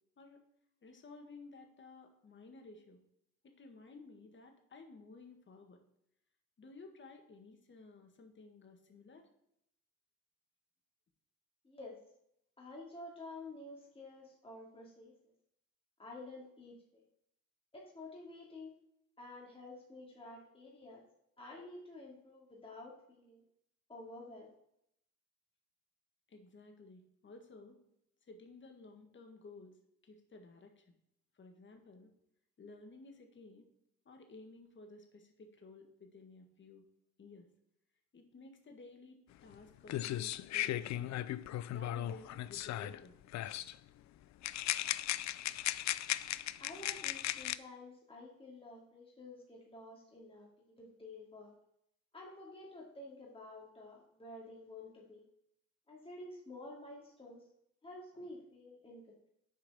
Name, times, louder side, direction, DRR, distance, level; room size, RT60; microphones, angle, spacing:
voice 1, 0.8-3.0 3.4-5.8 6.6-9.3 26.3-27.8 28.2-30.9 31.3-32.1 32.6-33.7 34.1-36.8 37.2-37.5 38.1-41.2 41.7-43.2, left 3 dB, 40° left, 4 dB, 1.7 m, -55 dB
voice 2, 12.6-15.1 16.0-17.1 17.7-18.7 19.2-21.0 21.4-23.4 23.9-24.5 46.6-51.5 52.1-55.3 55.9-57.4 57.8-59.3, left 2 dB, 20° left, -3 dB, 2.5 m, -50 dB
sound 1, 39.5-39.6 39.9-43.0 43.3-43.8 44.4-47.6, left 14 dB, 65° left, 0.4 m, -37 dB
7.4 x 4.8 x 6.2 m, 0.76 s
cardioid pair, 90°, 30 cm